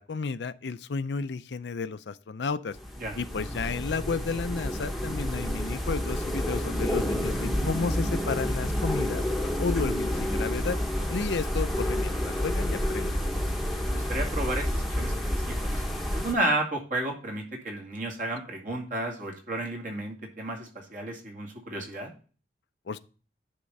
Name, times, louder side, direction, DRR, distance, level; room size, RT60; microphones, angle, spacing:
voice 1, 0.0-2.8 3.1-9.2 9.6-10.8 11.1-13.2 22.9-23.0, left 4 dB, 80° left, 0.5 m, -32 dB
sound 1, 2.7-16.3, left 1 dB, ahead, 1.0 m, -29 dB
voice 2, 13.8-15.7 16.1-22.1, right 1 dB, 45° right, 2.3 m, -32 dB
10.0 x 3.7 x 5.3 m
head